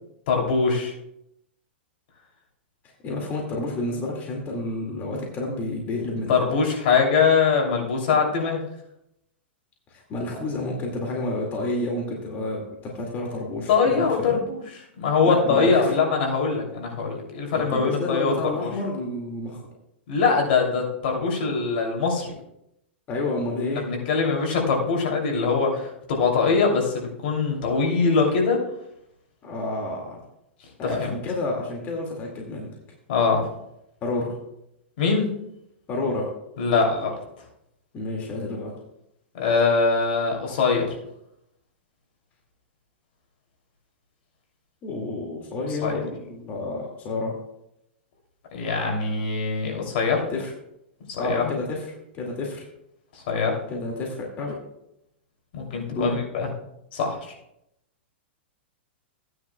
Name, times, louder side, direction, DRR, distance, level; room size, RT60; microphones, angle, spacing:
voice 1, 0.3-0.9 6.3-8.6 13.7-14.6 15.0-18.3 18.6-18.7 20.1-22.3 23.7-28.6 31.0-31.1 33.1-33.5 35.0-35.3 36.6-37.1 39.3-40.9 45.8-45.9 48.5-50.2 51.1-51.5 53.1-53.5 55.5-56.5 56.9-57.2, left 5 dB, 60° left, 0 dB, 2.8 m, -22 dB
voice 2, 2.8-6.4 9.9-14.4 15.2-15.9 17.5-19.6 23.1-23.9 29.4-30.2 30.8-32.7 34.0-34.4 35.9-36.3 37.9-38.7 44.8-47.4 50.3-50.5 51.2-51.9 52.1-52.6 53.7-54.6 55.9-56.2, left 2 dB, 30° left, -1 dB, 2.1 m, -30 dB
15.0 x 9.8 x 2.3 m, 0.81 s
hypercardioid pair, 145°, 6 cm